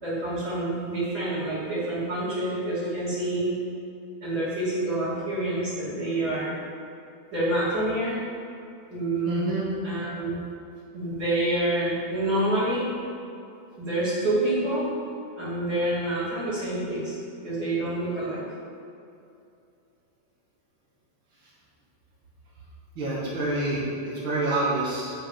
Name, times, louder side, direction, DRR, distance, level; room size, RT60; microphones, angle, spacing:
voice 1, 0.0-3.5 4.2-6.6 7.3-8.2 8.9-10.4 10.9-12.9 13.8-14.9 15.4-17.2 17.4-18.4, right 1 dB, 30° right, -9 dB, 2.2 m, -27 dB
voice 2, 9.3-9.7 22.9-25.1, right 2 dB, 80° right, -6 dB, 1.0 m, -27 dB
7.1 x 5.8 x 7.2 m, 2.6 s
omnidirectional pair, 4.8 m